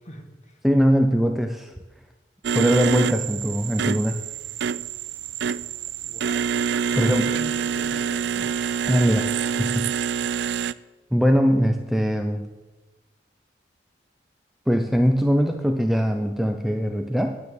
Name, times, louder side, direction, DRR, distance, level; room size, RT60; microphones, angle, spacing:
voice 1, 0.0-0.6 6.0-6.5 6.8-8.5, equal, 40° left, 4 dB, 1.7 m, -41 dB
voice 2, 0.6-1.7 2.5-4.2 7.0-7.3 8.9-9.9 11.1-12.5 14.7-17.4, equal, ahead, 5 dB, 0.5 m, -21 dB
sound 1, 2.4-10.7, right 7 dB, 70° right, 0.4 m, -26 dB
9.9 x 9.5 x 7.7 m, 1.1 s
head